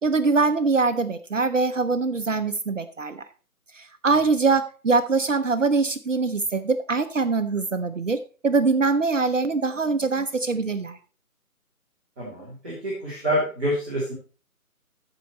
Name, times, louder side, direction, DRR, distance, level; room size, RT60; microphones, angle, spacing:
voice 1, 0.0-3.2 3.7-11.0, right 4 dB, 55° right, 11 dB, 0.8 m, -23 dB
voice 2, 12.2-14.1, equal, 10° right, -10 dB, 1.2 m, -27 dB
14.5 x 4.8 x 4.0 m, 0.37 s
figure-of-eight pair, 160°, 45 cm